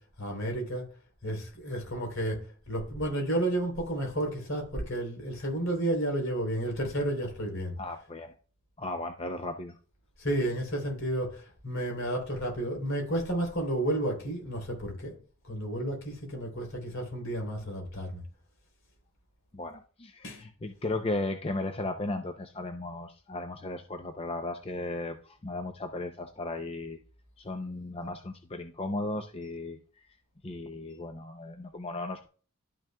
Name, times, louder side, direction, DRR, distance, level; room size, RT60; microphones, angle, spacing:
voice 1, 0.2-0.9 1.2-7.8 10.2-15.2 15.5-18.2 20.2-20.4, right 1 dB, 65° left, 3.5 m, -32 dB
voice 2, 7.8-8.3 8.8-9.8 19.5-27.0 27.4-29.8 30.4-32.3, left 2 dB, 25° left, 0.5 m, -36 dB
12.0 x 6.2 x 2.3 m
head